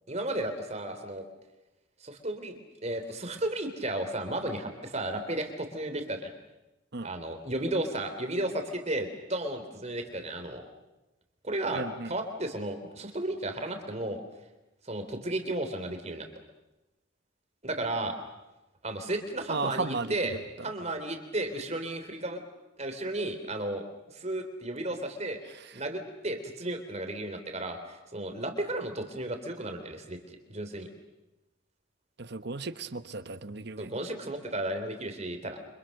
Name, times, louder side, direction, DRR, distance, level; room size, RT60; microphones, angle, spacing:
voice 1, 0.1-1.2 2.0-6.3 7.0-10.7 11.4-14.2 14.8-16.3 17.6-18.1 18.8-20.4 20.6-22.4 22.8-25.4 25.7-30.9 33.8-35.6, right 1 dB, 35° right, 6 dB, 3.3 m, -34 dB
voice 2, 11.7-12.1 19.5-20.2 32.2-33.9, right 3 dB, 55° right, 13 dB, 1.1 m, -34 dB
29.5 x 26.0 x 6.6 m, 1.0 s
head